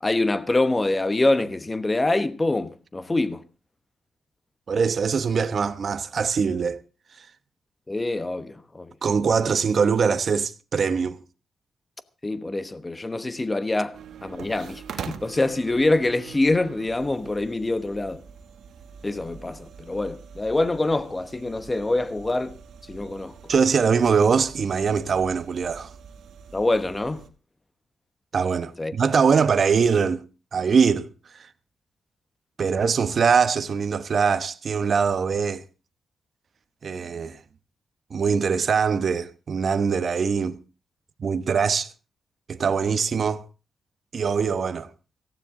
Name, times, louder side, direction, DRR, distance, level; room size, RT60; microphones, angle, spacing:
voice 1, 0.0-3.4 7.9-8.9 12.2-18.2 19.0-22.6 22.9-23.4 26.5-27.2 28.8-28.9, left 2 dB, 15° left, 1.0 m, -25 dB
voice 2, 4.7-6.8 7.2-7.3 9.0-11.2 23.5-25.9 28.3-30.2 30.5-31.1 32.6-35.6 36.8-37.4 38.1-40.6 41.2-41.9 42.5-43.4 44.1-44.9, right 6 dB, 45° right, 0.9 m, -22 dB
sound 1, 13.9-27.3, right 7 dB, 70° right, 1.4 m, -44 dB
18.0 x 15.5 x 3.7 m
wide cardioid pair, 150°, 0 cm